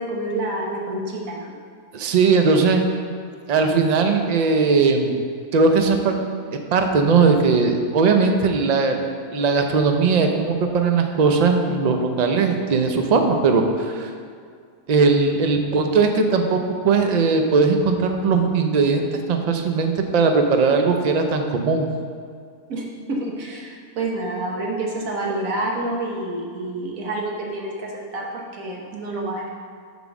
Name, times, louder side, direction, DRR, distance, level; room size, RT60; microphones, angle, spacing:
voice 1, 0.0-1.5 22.7-29.5, right 2 dB, 80° right, -1 dB, 1.5 m, -28 dB
voice 2, 1.9-2.8 3.5-5.2 5.5-6.2 6.7-9.0 9.3-14.1 14.9-16.6 16.8-21.9, right 4 dB, 55° right, 5 dB, 0.4 m, -19 dB
7.4 x 3.8 x 5.9 m, 2.1 s
omnidirectional pair, 1.4 m